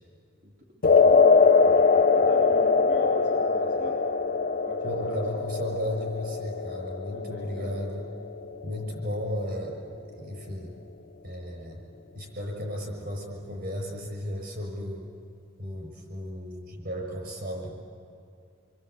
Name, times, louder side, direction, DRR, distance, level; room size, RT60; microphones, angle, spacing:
voice 1, 0.4-1.5 2.1-4.0 4.6-5.3 7.1-7.8, equal, 75° right, -2 dB, 2.8 m, -42 dB
sound 1, 0.8-9.2, left 4 dB, 50° left, 0.7 m, -22 dB
voice 2, 4.8-8.1 8.6-9.8 10.1-10.7 11.2-11.8 12.1-15.1 15.6-17.7, equal, 55° right, 1 dB, 6.7 m, -34 dB
28.0 x 22.5 x 8.3 m, 2.5 s
head